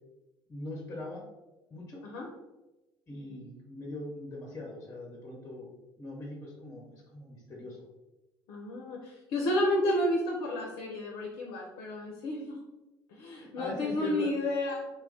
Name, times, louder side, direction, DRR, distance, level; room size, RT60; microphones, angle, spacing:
voice 1, 0.5-1.3 1.7-2.0 3.1-5.7 6.0-7.8 13.3-14.3, left 2 dB, 20° left, -3 dB, 0.7 m, -41 dB
voice 2, 8.5-12.6 13.1-14.9, left 1 dB, 55° left, 0 dB, 0.5 m, -31 dB
2.2 x 2.0 x 3.6 m, 1.0 s
figure-of-eight pair, 60°, 13 cm